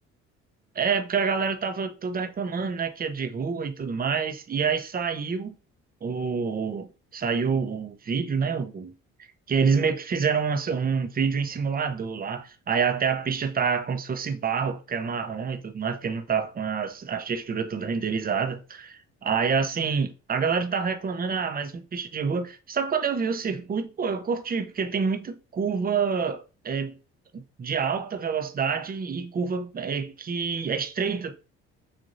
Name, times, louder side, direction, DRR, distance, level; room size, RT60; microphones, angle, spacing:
voice 1, 0.8-5.5 6.0-8.9 9.5-27.0 27.3-31.4, right 6 dB, 30° right, 0.7 m, -27 dB
6.4 x 2.6 x 2.6 m
supercardioid pair, 80°, 29 cm